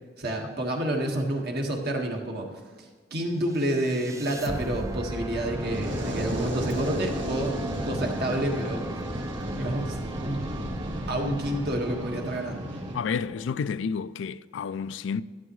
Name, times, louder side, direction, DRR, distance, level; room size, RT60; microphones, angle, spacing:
voice 1, 0.2-7.5 7.8-9.0 9.6-10.0 10.2-10.6 11.1-12.6, right 1 dB, 60° right, 1.7 m, -29 dB
sound 1, 3.5-13.7, right 2 dB, 15° right, 0.4 m, -37 dB
Fire, 5.3-13.0, equal, 90° right, 1.8 m, -34 dB
voice 2, 12.9-15.2, left 6 dB, 80° left, 0.3 m, -30 dB
12.5 x 11.5 x 3.1 m
head